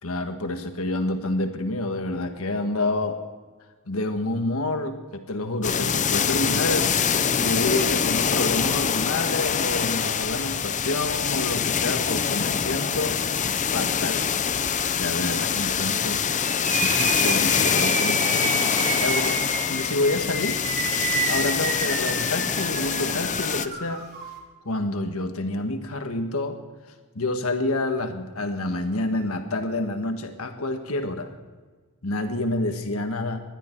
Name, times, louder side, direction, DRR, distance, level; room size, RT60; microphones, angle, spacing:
voice 1, 0.0-3.2 3.9-6.9 7.4-13.2 13.7-14.2 14.9-16.2 16.7-18.4 18.9-19.4 19.7-20.6 21.3-24.0 24.6-26.6 27.1-31.4 32.0-33.4, left 2 dB, 75° left, 6 dB, 1.5 m, -28 dB
sound 1, 5.6-23.7, left 7 dB, 35° left, 0.6 m, -24 dB
sound 2, 16.4-24.3, right 4 dB, 45° right, 3.8 m, -30 dB
19.5 x 12.5 x 4.6 m, 1.4 s
head